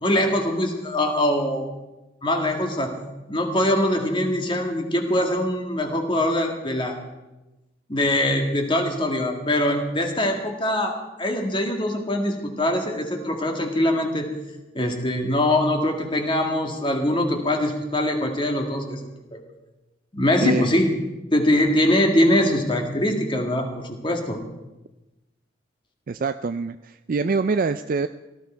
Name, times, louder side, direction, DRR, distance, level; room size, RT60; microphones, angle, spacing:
voice 1, 0.0-1.7 2.2-2.9 3.3-7.0 7.9-14.3 14.7-19.4 20.1-20.9 21.3-24.4, left 1 dB, 25° left, 3 dB, 2.0 m, -23 dB
voice 2, 26.1-28.1, right 4 dB, 45° right, 10 dB, 0.4 m, -24 dB
17.5 x 14.0 x 4.5 m, 1.0 s
head